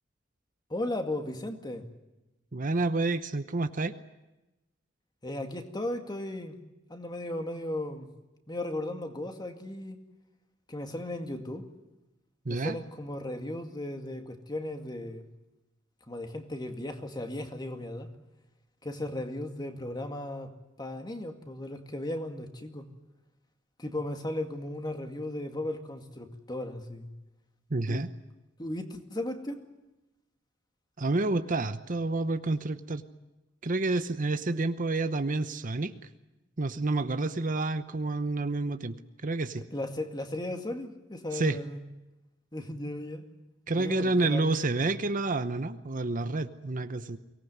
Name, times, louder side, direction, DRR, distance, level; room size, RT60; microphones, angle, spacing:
voice 1, 0.7-1.9 5.2-6.6 6.9-8.1 8.5-10.0 10.7-11.7 12.5-15.2 16.1-18.1 18.8-20.5 20.8-22.9 23.8-27.1 27.8-28.0 28.6-29.6 39.7-41.8 42.5-43.2 43.8-44.6, left 1 dB, 20° left, 5 dB, 2.2 m, -36 dB
voice 2, 2.5-3.9 12.4-12.8 27.7-28.1 31.0-33.0 33.6-35.9 36.6-38.9 39.2-39.6 41.3-41.6 43.7-47.2, right 2 dB, 45° right, 11 dB, 0.9 m, -29 dB
24.0 x 18.5 x 9.5 m, 0.99 s
head